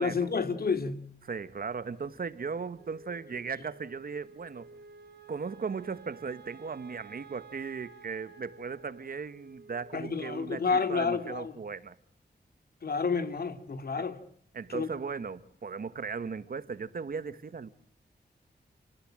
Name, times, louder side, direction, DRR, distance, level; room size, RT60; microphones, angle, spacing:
voice 1, 0.0-1.0 9.9-11.5 12.8-14.2 14.7-14.9, left 5 dB, 60° left, 2.4 m, -30 dB
voice 2, 1.2-4.7 5.3-11.9 14.0-14.1 14.5-17.7, right 5 dB, 60° right, 1.4 m, -37 dB
Wind instrument woodwind instrument, 2.7-11.2, right 5 dB, 75° right, 4.7 m, -53 dB
29.5 x 18.5 x 8.8 m
wide cardioid pair, 115°, 17 cm